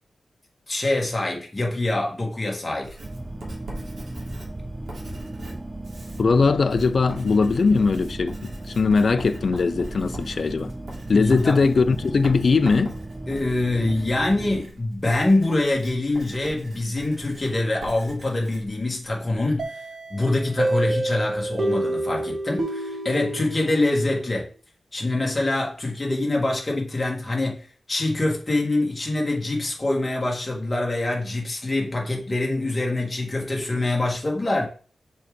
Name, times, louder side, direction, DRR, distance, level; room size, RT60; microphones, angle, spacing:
voice 1, 0.7-3.0 11.1-11.6 13.3-19.7 20.1-24.5 24.9-34.7, left 2 dB, 20° left, 1.7 m, -25 dB
Writing, 2.8-19.5, right 1 dB, 65° right, 2.1 m, -42 dB
sound 1, 3.0-14.6, right 1 dB, 15° right, 0.4 m, -36 dB
voice 2, 6.2-10.7 11.1-13.0, left 4 dB, 55° left, 0.4 m, -20 dB
sound 2, 19.6-24.3, right 2 dB, 40° right, 1.3 m, -28 dB
6.7 x 3.8 x 3.7 m
wide cardioid pair, 125°, 0 cm